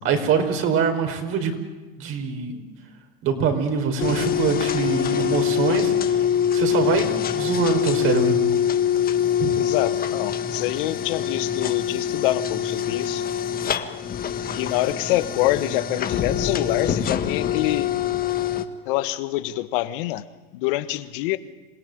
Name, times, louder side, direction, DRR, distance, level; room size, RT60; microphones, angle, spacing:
voice 1, 0.0-1.5 2.0-2.6 3.2-6.2 6.5-8.4 9.4-9.5, right 6 dB, 45° right, 4.8 m, -24 dB
sound 1, 4.0-18.7, left 9 dB, 30° left, 1.7 m, -24 dB
voice 2, 9.6-13.3 14.5-17.9 18.8-20.2 20.5-21.4, left 16 dB, 60° left, 1.6 m, -26 dB
27.0 x 17.5 x 9.4 m
hypercardioid pair, 105°, 30 cm